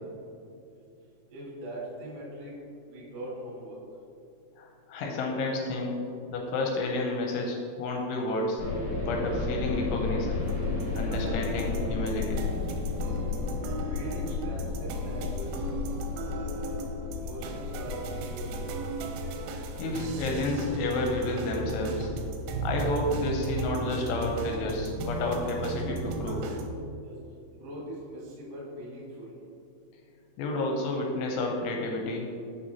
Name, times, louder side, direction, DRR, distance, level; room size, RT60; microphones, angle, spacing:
voice 1, 1.3-2.5 2.8-3.8 13.2-13.3 13.9-15.6 16.1-16.8 17.1-18.7 27.0-27.1 27.5-29.3, right 1 dB, 70° right, -5 dB, 1.6 m, -41 dB
voice 2, 4.6-5.9 6.3-8.6 9.0-10.5 10.9-12.4 19.8-22.1 22.6-26.4 30.4-32.3, left 2 dB, 80° left, 1 dB, 2.9 m, -30 dB
sound 1, 8.6-20.9, left 4 dB, 60° left, 2.2 m, -33 dB
sound 2, 10.4-26.7, right 2 dB, 90° right, 3.2 m, -36 dB
7.6 x 5.8 x 2.7 m, 2.6 s
omnidirectional pair, 5.7 m